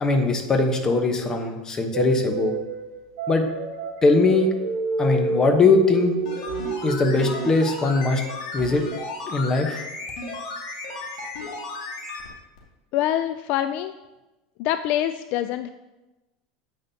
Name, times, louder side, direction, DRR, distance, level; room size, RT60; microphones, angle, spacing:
voice 1, 0.0-2.5 3.3-3.4 4.0-4.5 5.0-6.1 6.8-8.2 8.5-8.8 9.3-9.8, left 3 dB, 20° left, 5 dB, 1.0 m, -20 dB
sound 1, 1.9-7.5, right 5 dB, 70° right, 0.9 m, -29 dB
sound 2, 6.2-12.3 12.6-12.7, left 3 dB, 75° left, 2.2 m, -34 dB
voice 2, 12.9-13.9 14.6-15.7, left 12 dB, 50° left, 10 dB, 0.3 m, -25 dB
9.1 x 8.7 x 2.8 m, 1.1 s
supercardioid pair, 145°, 3 cm